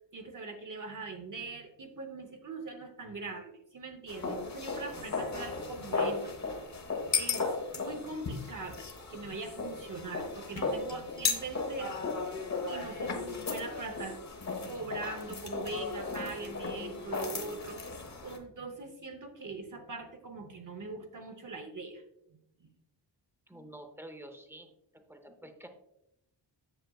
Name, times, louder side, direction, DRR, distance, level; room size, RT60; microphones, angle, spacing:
voice 1, 0.1-6.6 7.0-12.0 12.7-14.2 14.6-22.0 22.3-22.7, right 3 dB, 45° right, 4 dB, 0.8 m, -42 dB
sound 1, 4.1-18.4, left 4 dB, 35° left, 0.9 m, -35 dB
voice 2, 23.5-24.7 25.1-25.7, right 1 dB, 5° right, 6 dB, 0.6 m, -48 dB
7.9 x 7.4 x 2.3 m, 0.84 s
wide cardioid pair, 165°, 46 cm